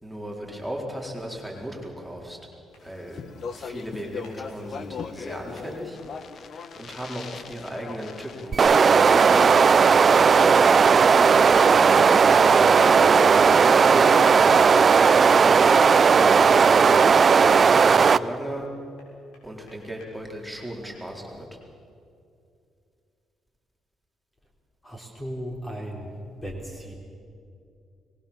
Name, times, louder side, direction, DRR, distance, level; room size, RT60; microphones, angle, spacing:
voice 1, 0.0-2.4 2.8-3.2 3.5-6.0 6.7-10.2 11.6-14.1 15.1-16.0 16.4-17.3 17.8-18.7 19.4-21.5, equal, ahead, -2 dB, 4.1 m, -37 dB
sound 1, 2.7-2.9 4.2-4.4 5.5-5.7 6.9-7.0 9.3-9.4 10.7-10.8 12.0-12.1 14.4-14.5 14.8-15.6 16.7-17.9 19.0-20.1, left 2 dB, 85° left, 6.9 m, -53 dB
Speech, 2.9-15.2, left 5 dB, 55° left, 1.2 m, -39 dB
sound 2, 8.5-18.2, right 5 dB, 40° right, 0.6 m, -16 dB
voice 2, 24.8-26.1 26.4-26.9, equal, 20° left, 0 dB, 3.9 m, -36 dB
23.0 x 20.5 x 7.2 m, 2.5 s
cardioid pair, 90°, 0 cm